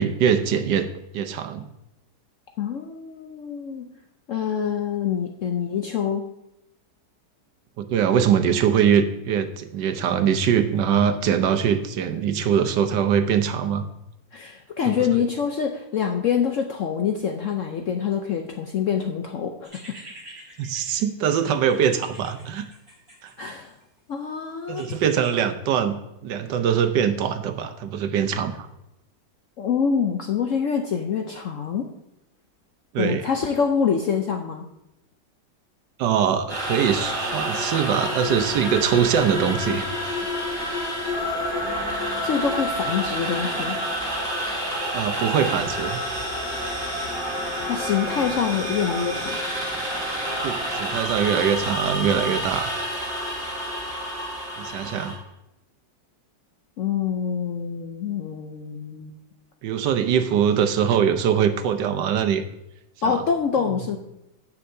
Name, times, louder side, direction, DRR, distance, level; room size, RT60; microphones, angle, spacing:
voice 1, 0.0-1.7 7.8-13.9 14.9-15.2 20.6-22.7 23.2-23.5 24.7-26.0 26.2-28.7 32.9-33.2 36.0-40.3 44.9-46.0 50.4-52.7 54.6-55.1 59.6-62.4 63.0-63.2, right 8 dB, 75° right, 9 dB, 1.3 m, -22 dB
voice 2, 2.6-3.9 4.3-6.3 14.3-20.0 23.4-23.7 24.1-24.9 29.6-31.9 33.0-34.6 42.2-43.8 47.7-49.4 56.8-59.2 63.0-64.0, left 7 dB, 65° left, 3 dB, 0.7 m, -25 dB
sound 1, 19.6-23.8 24.8-25.4, right 1 dB, 30° right, 2.2 m, -46 dB
sound 2, 36.5-55.1, equal, 15° right, 3.8 m, -28 dB
16.5 x 5.7 x 2.7 m, 0.89 s
omnidirectional pair, 1.9 m